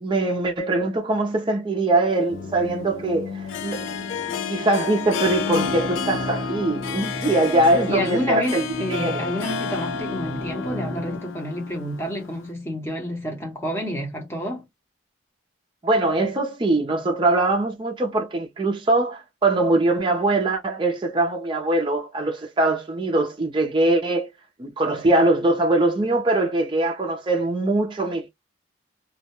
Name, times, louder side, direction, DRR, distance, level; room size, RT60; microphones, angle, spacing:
voice 1, 0.0-3.9 4.5-9.3 15.8-24.3 24.6-28.3, right 2 dB, 25° right, 0.4 m, -22 dB
Harp, 2.1-12.5, left 6 dB, 80° left, 0.4 m, -32 dB
sound 1, 2.3-11.2, left 2 dB, 45° left, 0.7 m, -33 dB
voice 2, 7.9-14.7, equal, 15° left, 0.8 m, -29 dB
2.2 x 2.0 x 2.8 m
head